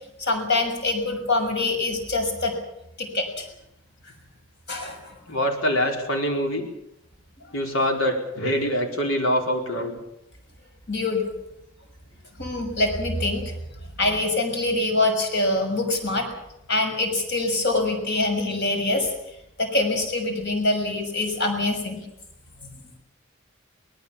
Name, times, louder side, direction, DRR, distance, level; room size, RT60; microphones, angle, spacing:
voice 1, 0.2-2.5 3.0-3.5 4.7-5.4 10.9-11.3 12.4-13.5 14.0-16.3 16.7-19.1 19.6-22.0 22.6-22.7, left 2 dB, 60° left, 4 dB, 6.5 m, -24 dB
voice 2, 5.3-6.7 7.5-10.0, equal, 85° left, 3 dB, 4.7 m, -24 dB
24.0 x 19.5 x 7.3 m, 0.82 s
head